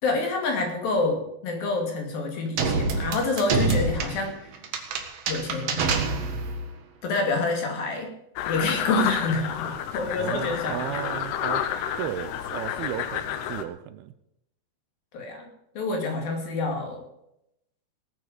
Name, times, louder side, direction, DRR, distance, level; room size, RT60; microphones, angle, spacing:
voice 1, 0.0-4.5 5.3-5.8 7.0-8.1 8.5-10.9 15.1-15.5 15.8-17.1, left 3 dB, 65° left, 2 dB, 4.1 m, -27 dB
sound 1, 2.6-6.7, right 3 dB, 55° right, 2.0 m, -27 dB
sound 2, 8.4-13.6, left 9 dB, 85° left, 3.1 m, -30 dB
voice 2, 10.2-11.7 12.0-14.1, right 12 dB, 80° right, 12 dB, 2.6 m, -34 dB
19.0 x 9.3 x 5.1 m, 0.81 s
omnidirectional pair, 4.6 m